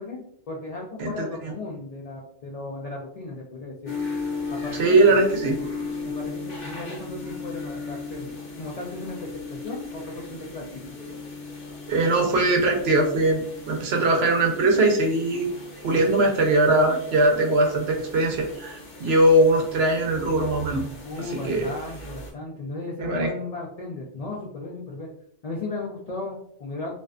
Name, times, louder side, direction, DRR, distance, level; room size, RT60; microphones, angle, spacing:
voice 1, 0.0-3.9 4.6-5.2 6.0-8.3 8.6-9.2 9.5-11.0 21.0-25.1 25.4-26.9, left 2 dB, 70° left, -2 dB, 0.3 m, -35 dB
voice 2, 1.0-1.5 4.8-5.6 11.9-15.5 15.8-20.9 21.3-21.7 23.0-23.3, right 2 dB, 70° right, 3 dB, 0.8 m, -21 dB
sound 1, 3.8-22.3, left 3 dB, 55° left, 0.8 m, -37 dB
2.5 x 2.1 x 2.3 m, 0.65 s
omnidirectional pair, 1.2 m